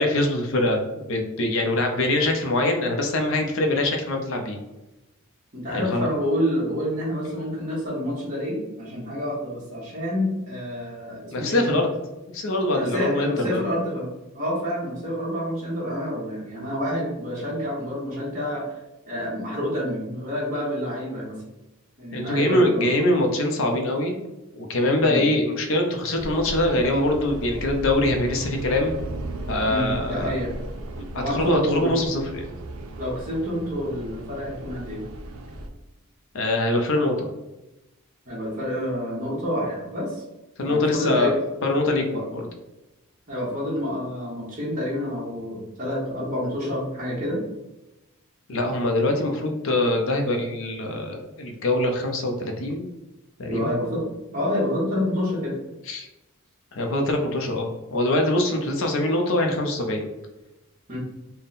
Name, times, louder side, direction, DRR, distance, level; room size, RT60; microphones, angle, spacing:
voice 1, 0.0-4.6 5.7-6.1 11.3-11.9 12.3-13.6 22.1-24.2 24.5-29.0 29.5-30.3 31.0-32.4 36.3-37.3 40.6-41.3 41.6-42.5 48.5-52.9 53.4-53.7 55.9-56.1 56.7-60.1, left 1 dB, 60° left, 3 dB, 0.6 m, -23 dB
voice 2, 5.5-11.7 12.7-18.7 19.1-21.4 22.0-22.9 25.0-25.2 29.7-30.5 31.1-32.0 33.0-35.0 38.3-40.2 40.6-41.4 42.1-42.2 43.3-47.4 53.5-54.0 54.3-55.6 60.9-61.0, left 1 dB, 35° right, -8 dB, 1.1 m, -28 dB
sound 1, 26.2-35.7, right 1 dB, 80° right, 0.5 m, -36 dB
3.6 x 2.1 x 4.0 m, 1.0 s
head